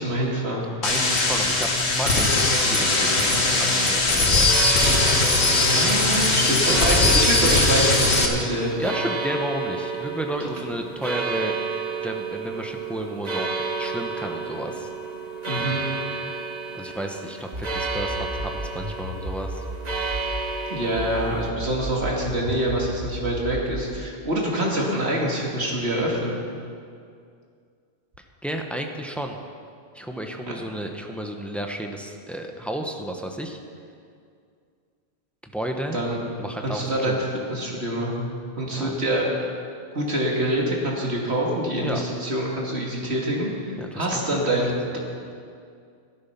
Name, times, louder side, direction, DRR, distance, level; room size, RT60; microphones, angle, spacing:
voice 1, 0.0-0.7 5.6-8.9 15.5-15.8 20.7-26.4 30.4-30.5 35.9-36.2 36.6-37.2 37.5-38.3 38.6-39.3 39.9-45.0, right 1 dB, 85° right, -2 dB, 2.7 m, -25 dB
sound 1, 0.8-8.3, left 2 dB, 90° left, 1.9 m, -20 dB
voice 2, 0.8-4.6 6.4-7.1 8.8-11.6 12.0-14.9 16.7-19.6 28.4-29.4 29.9-33.6 35.4-36.0 36.4-37.2 38.7-39.0 41.8-42.0 43.8-44.5, right 1 dB, ahead, 3 dB, 1.0 m, -32 dB
sound 2, 2.6-21.5, right 4 dB, 40° right, 1.1 m, -32 dB
sound 3, 17.5-20.5 20.9-24.0, right 1 dB, 65° right, 1.5 m, -34 dB
14.0 x 12.5 x 5.9 m, 2.3 s
omnidirectional pair, 1.1 m